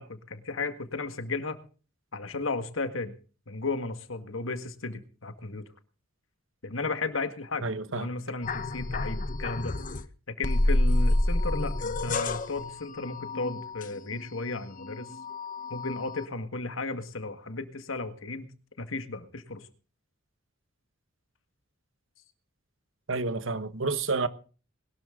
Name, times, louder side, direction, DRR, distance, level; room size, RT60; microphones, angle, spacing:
voice 1, 0.0-1.6 2.1-3.1 3.5-5.6 6.6-7.7 7.9-9.7 10.3-15.1 15.7-18.5 18.8-19.7, left 3 dB, 80° left, 1.8 m, -34 dB
voice 2, 7.6-8.1 23.1-24.3, right 3 dB, 75° right, 1.3 m, -29 dB
sound 1, 8.4-10.1 10.4-14.4 14.8-16.3, left 1 dB, 40° left, 0.9 m, -29 dB
21.0 x 12.5 x 3.8 m
head